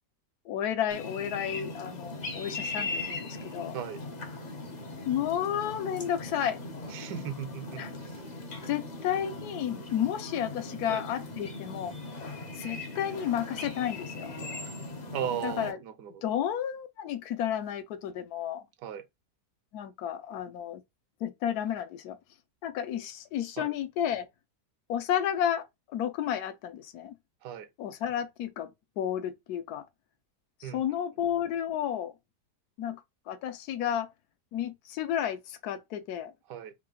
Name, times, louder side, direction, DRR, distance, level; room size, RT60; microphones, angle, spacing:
voice 1, 0.5-3.8 5.1-6.6 7.8-7.9 8.7-11.9 12.5-14.3 15.4-15.8 16.2-18.6 19.7-20.8 21.2-22.2 22.6-24.3 24.9-27.1 27.8-28.7 29.0-29.9 30.6-32.1 32.8-33.0 33.3-34.1 34.5-36.3, left 10 dB, 70° left, 1.1 m, -32 dB
sound 1, 0.9-15.7, left 3 dB, 45° left, 0.5 m, -39 dB
voice 2, 6.9-8.2 10.9-11.0 15.1-16.2 18.8-19.0 23.6-23.7 27.4-27.7 30.6-30.8 36.5-36.7, right 9 dB, 85° right, 1.3 m, -37 dB
3.6 x 2.4 x 3.6 m
omnidirectional pair, 1.8 m